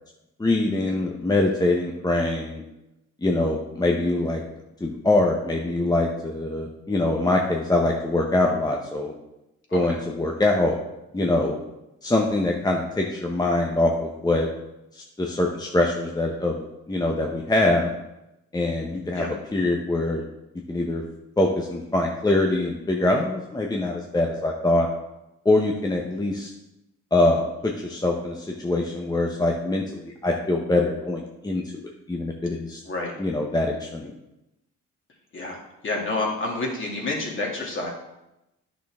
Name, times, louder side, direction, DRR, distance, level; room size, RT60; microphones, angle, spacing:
voice 1, 0.4-2.6 3.2-4.4 4.8-9.1 9.7-10.8 11.1-11.6 12.0-14.5 14.9-17.9 18.5-19.2 19.5-20.2 20.7-21.0 21.4-24.9 25.4-26.5 27.1-31.6 32.1-32.8 33.2-34.1, left 2 dB, 15° left, 0 dB, 0.9 m, -23 dB
voice 2, 32.8-33.1 35.3-37.9, left 2 dB, 40° left, -1 dB, 2.6 m, -29 dB
10.0 x 6.3 x 3.6 m, 0.92 s
cardioid pair, 90°, 30 cm